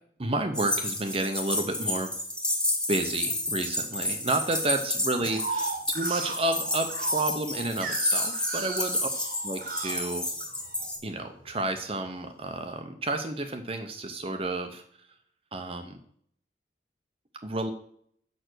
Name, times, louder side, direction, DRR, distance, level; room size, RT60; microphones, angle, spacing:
voice 1, 0.2-2.1 2.9-8.9 9.4-10.3 11.0-14.8 15.5-16.0 17.4-17.7, right 2 dB, 30° right, 6 dB, 0.7 m, -31 dB
sound 1, 0.5-11.0, left 1 dB, 5° left, 1.2 m, -30 dB
sound 2, 5.1-10.9 11.4-12.1, right 4 dB, 50° right, 1.2 m, -36 dB
6.7 x 5.8 x 6.2 m, 0.64 s
head